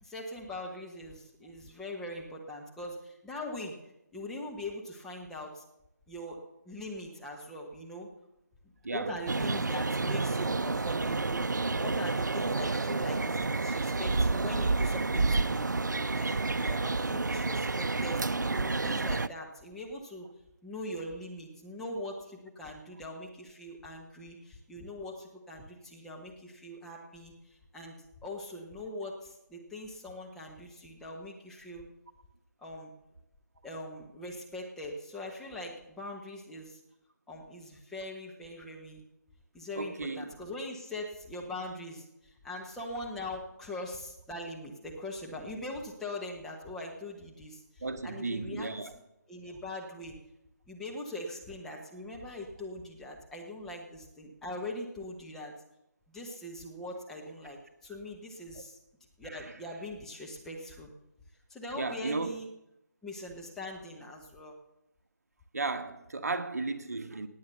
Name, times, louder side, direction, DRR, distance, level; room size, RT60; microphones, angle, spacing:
voice 1, 0.0-3.8 4.1-5.6 6.1-8.1 8.9-11.5 11.8-15.7 16.1-20.3 20.6-27.3 27.7-27.9 28.2-31.9 32.6-32.9 33.6-36.8 37.3-39.0 39.5-47.6 48.0-48.7 49.3-50.1 50.7-55.5 56.1-58.8 59.2-60.9 61.5-62.5 63.0-64.5, left 1 dB, 5° left, 1.1 m, -41 dB
voice 2, 8.8-9.2 39.7-40.3 47.8-49.0 58.5-58.6 59.2-59.5 61.7-62.3 65.5-67.3, right 3 dB, 55° right, 1.4 m, -35 dB
sound 1, 9.3-19.3, right 3 dB, 75° right, 0.6 m, -29 dB
18.5 x 8.6 x 6.7 m
figure-of-eight pair, 155°, 10 cm